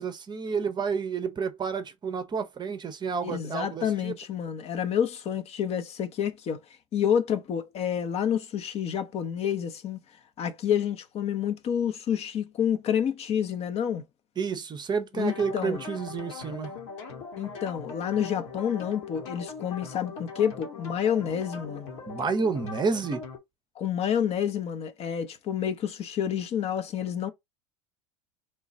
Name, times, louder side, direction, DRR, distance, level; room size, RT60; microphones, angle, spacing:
voice 1, 0.0-4.1 14.4-16.7 22.1-23.2, right 5 dB, 25° right, 0.6 m, -30 dB
voice 2, 3.2-6.6 6.9-10.0 10.4-14.0 15.1-15.8 17.4-22.0 23.8-27.3, left 8 dB, 40° left, 0.6 m, -29 dB
sound 1, 15.2-23.4, left 5 dB, 65° left, 1.2 m, -40 dB
3.2 x 2.3 x 4.0 m
hypercardioid pair, 75°, 17 cm